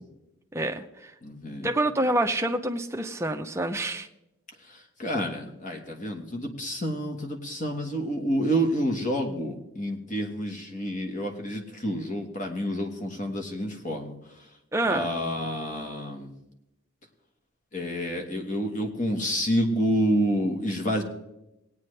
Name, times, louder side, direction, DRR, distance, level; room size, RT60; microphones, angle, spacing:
voice 1, 0.5-1.1 1.6-4.1 14.7-15.1, right 1 dB, 10° right, 5 dB, 0.6 m, -27 dB
voice 2, 1.2-1.7 4.6-14.5 14.9-16.3 17.7-21.0, equal, 35° left, 2 dB, 1.3 m, -29 dB
19.0 x 9.1 x 3.3 m, 0.91 s
head